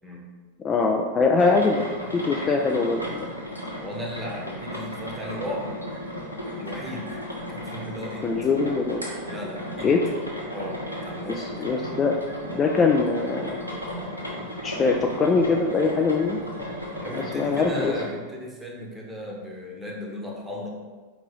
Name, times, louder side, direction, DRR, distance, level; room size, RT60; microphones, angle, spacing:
voice 1, 0.6-1.8 2.1-3.3 8.2-9.0 9.8-10.0 11.4-12.2 12.5-13.6 14.6-16.4 17.1-17.9, left 4 dB, 25° left, 2 dB, 0.3 m, -22 dB
sound 1, 1.4-18.1, equal, 90° right, 1.0 m, -35 dB
voice 2, 3.8-5.7 6.6-7.1 7.5-8.3 9.3-9.9 10.5-11.5 17.0-20.7, left 1 dB, 10° right, -2 dB, 0.9 m, -35 dB
4.6 x 3.0 x 3.8 m, 1.4 s
figure-of-eight pair, 90°, 0 cm